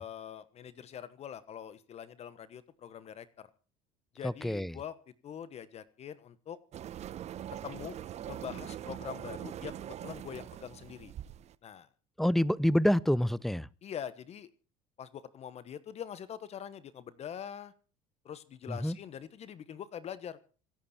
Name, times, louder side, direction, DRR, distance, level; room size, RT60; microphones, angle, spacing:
voice 1, 0.0-3.5 4.1-4.9 5.2-6.6 7.6-8.0 8.3-11.1 11.6-11.9 13.8-14.5 15.0-17.7 18.2-20.4, left 9 dB, 45° left, 1.3 m, -44 dB
voice 2, 4.2-4.8 12.2-13.7 18.7-19.0, equal, ahead, 0.7 m, -27 dB
sound 1, 6.7-11.5, right 11 dB, 45° right, 1.0 m, -42 dB
26.5 x 8.8 x 4.4 m
supercardioid pair, 80°, 15 cm